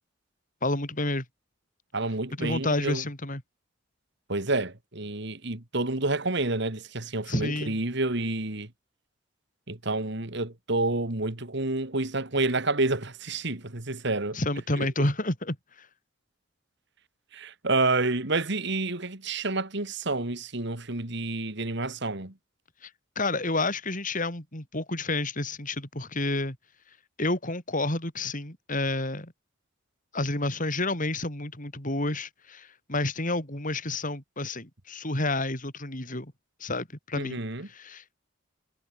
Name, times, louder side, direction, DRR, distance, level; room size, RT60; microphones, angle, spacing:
voice 1, 0.6-1.2 2.4-3.4 7.3-7.8 14.3-15.9 22.8-22.9 23.1-26.6 27.2-29.3 30.1-36.3 36.6-37.4 37.7-38.1, left 2 dB, 40° left, 6.5 m, -30 dB
voice 2, 1.9-3.0 4.3-8.7 9.7-14.4 14.8-14.9 17.3-22.3 37.2-37.7, right 2 dB, 60° right, 2.5 m, -29 dB
head